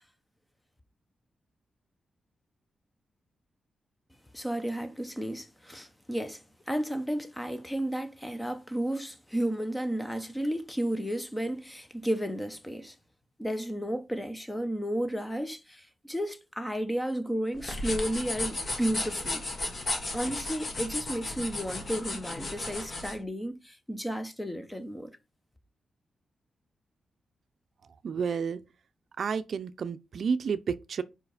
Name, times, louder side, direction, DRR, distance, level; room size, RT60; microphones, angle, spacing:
voice 1, 4.3-13.0 13.4-19.4 20.1-25.2, right 1 dB, 10° left, 0.8 m, -33 dB
sound 1, 17.6-23.2, left 2 dB, 35° left, 1.6 m, -34 dB
voice 2, 28.0-28.6 29.2-31.0, right 6 dB, 60° right, 0.5 m, -30 dB
4.9 x 4.8 x 5.0 m
wide cardioid pair, 135°, 0 cm